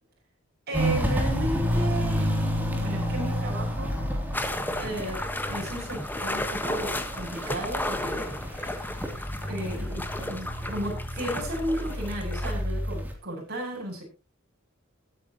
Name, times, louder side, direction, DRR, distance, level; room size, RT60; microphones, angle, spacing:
Walk footsteps, 0.7-13.1, equal, 10° right, 3.2 m, -30 dB
voice 1, 0.7-4.0 4.7-8.4 9.4-14.0, right 1 dB, 50° right, -1 dB, 7.8 m, -34 dB
sound 1, 4.3-12.5, left 1 dB, 10° left, 1.4 m, -34 dB
21.0 x 9.7 x 3.0 m, 0.29 s
head